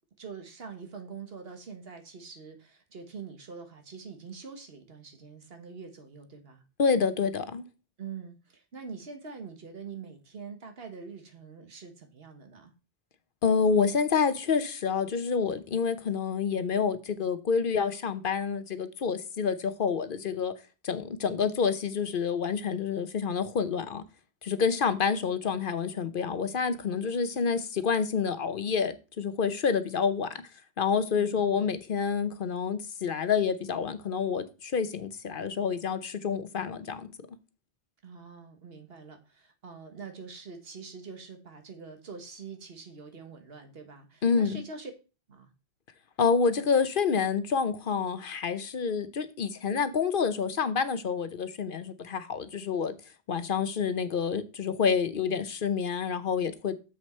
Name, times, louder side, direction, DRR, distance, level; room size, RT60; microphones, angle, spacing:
voice 1, 0.2-6.6 8.0-12.7 24.5-24.6 31.2-31.5 38.0-44.9 45.3-45.5, right 5 dB, 70° right, 1.6 m, -44 dB
voice 2, 6.8-7.7 13.4-20.5 20.8-24.0 24.4-30.3 30.8-37.1 44.2-44.6 46.2-53.0 53.3-56.8, left 6 dB, 60° left, 0.9 m, -28 dB
7.3 x 6.2 x 4.3 m
omnidirectional pair, 1.1 m